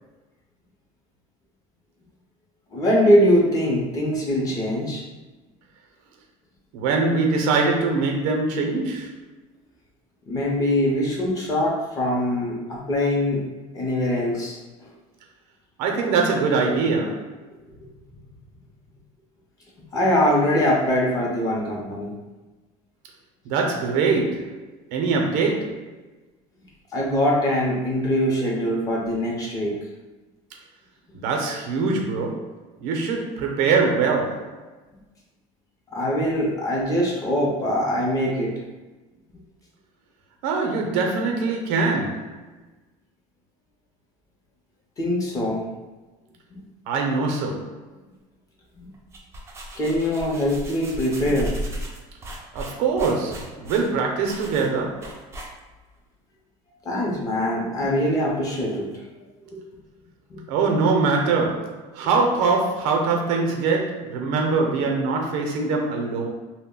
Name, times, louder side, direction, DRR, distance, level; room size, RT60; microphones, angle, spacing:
voice 1, 2.7-5.0 10.3-13.4 13.7-14.6 19.9-22.1 26.9-29.7 35.9-38.5 45.0-45.6 46.5-46.6 48.7-48.8 49.7-51.5 56.8-58.9 59.4-59.6 60.3-60.4, equal, 25° left, 0.6 m, -22 dB
voice 2, 6.7-9.1 15.8-17.4 23.4-24.6 24.9-25.9 31.1-34.7 40.4-42.3 46.9-47.8 52.5-55.2 60.5-66.3, right 4 dB, 80° right, 0.6 m, -23 dB
sound 1, 48.9-55.9, equal, 20° right, 0.4 m, -36 dB
2.3 x 2.1 x 3.6 m
cardioid pair, 155°, 15 cm